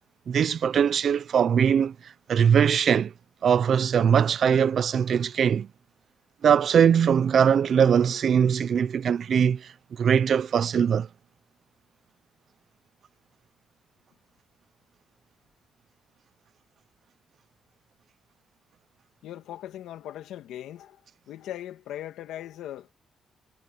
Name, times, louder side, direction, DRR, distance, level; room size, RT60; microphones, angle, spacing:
voice 1, 0.3-3.1 3.4-5.7 6.4-9.7 10.0-11.1, right 7 dB, 55° right, 0.7 m, -21 dB
voice 2, 19.2-21.0 21.3-22.9, left 12 dB, 85° left, 2.7 m, -39 dB
cardioid pair, 100°, 0 cm